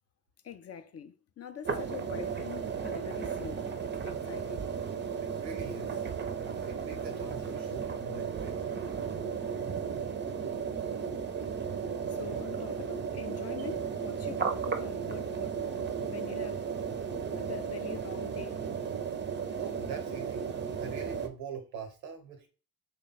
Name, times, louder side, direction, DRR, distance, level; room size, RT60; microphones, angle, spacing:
voice 1, 0.4-3.7 4.0-4.8 12.1-15.6 16.0-16.7 17.4-18.6, left 7 dB, 35° left, 0.4 m, -44 dB
sound 1, 1.6-21.3, right 6 dB, 25° right, 0.5 m, -35 dB
voice 2, 5.2-6.0 6.6-8.7 19.6-20.5 20.8-22.5, right 5 dB, 90° right, 0.9 m, -43 dB
3.3 x 2.2 x 4.0 m
hypercardioid pair, 50°, 48 cm